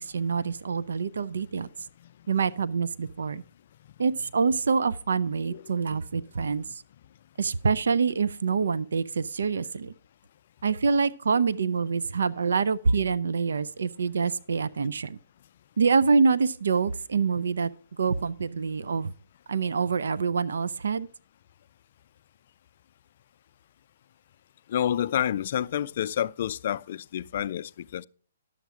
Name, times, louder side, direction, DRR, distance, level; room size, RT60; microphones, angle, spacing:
voice 1, 0.0-1.7 2.3-3.4 4.0-6.8 7.4-9.9 10.6-15.2 15.8-17.7 18.0-19.1 19.5-21.1, right 5 dB, 75° right, 0.5 m, -26 dB
voice 2, 24.7-28.1, left 10 dB, 55° left, 0.4 m, -29 dB
11.0 x 7.2 x 4.7 m
hypercardioid pair, 130°, 0 cm